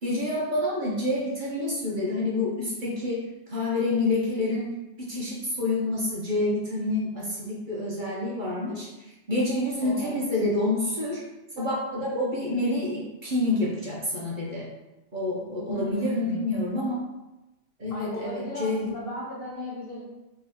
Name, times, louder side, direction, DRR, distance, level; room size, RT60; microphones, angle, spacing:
voice 1, 0.0-3.2 3.5-4.7 5.0-8.9 9.3-11.2 11.6-14.7 15.1-16.9 17.8-18.9, left 2 dB, 45° right, -4 dB, 1.0 m, -28 dB
voice 2, 9.8-10.2 15.7-16.5 17.9-20.0, left 1 dB, 50° left, -4 dB, 1.2 m, -36 dB
4.0 x 2.8 x 4.2 m, 1.0 s
omnidirectional pair, 1.3 m